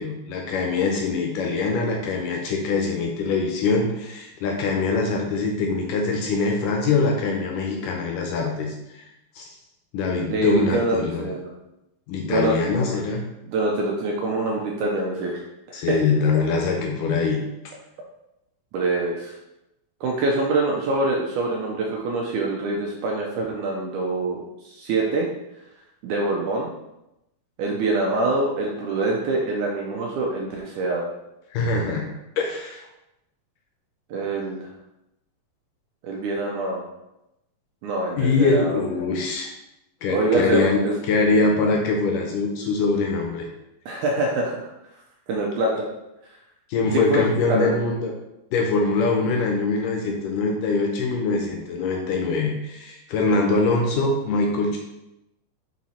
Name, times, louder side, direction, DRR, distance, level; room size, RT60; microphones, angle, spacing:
voice 1, 0.0-9.1 9.4-9.5 9.9-11.3 12.1-13.2 15.7-17.4 31.5-32.0 32.4-32.9 38.2-39.5 40.0-43.5 46.7-48.1 48.5-54.8, left 3 dB, 75° left, 1 dB, 2.2 m, -23 dB
voice 2, 10.3-11.5 12.3-12.6 13.5-15.4 15.7-16.0 18.7-19.4 20.0-24.4 24.7-25.3 26.0-26.7 27.6-31.1 34.1-34.7 36.0-36.8 37.8-38.8 40.1-40.9 43.9-44.6 45.3-45.9 46.9-47.8, right 2 dB, 75° right, -1 dB, 1.9 m, -25 dB
6.3 x 4.5 x 4.2 m, 0.90 s
omnidirectional pair, 4.2 m